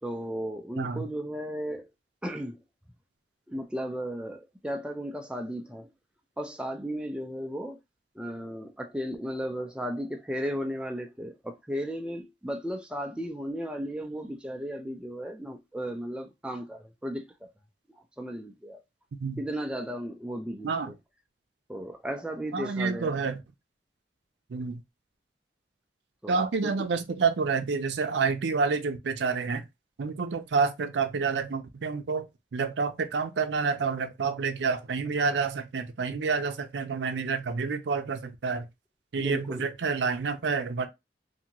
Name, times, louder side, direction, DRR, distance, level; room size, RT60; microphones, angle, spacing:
voice 1, 0.0-1.9 2.2-2.6 3.5-5.9 6.4-7.8 8.1-17.5 17.9-18.8 19.4-21.0 21.7-23.3 26.2-26.4 26.6-26.7 39.2-39.7, equal, 5° right, 0.3 m, -35 dB
voice 2, 22.5-23.4 24.5-24.8 26.3-29.7 30.0-38.7 39.1-40.9, right 5 dB, 85° right, 0.4 m, -28 dB
2.6 x 2.5 x 2.8 m
head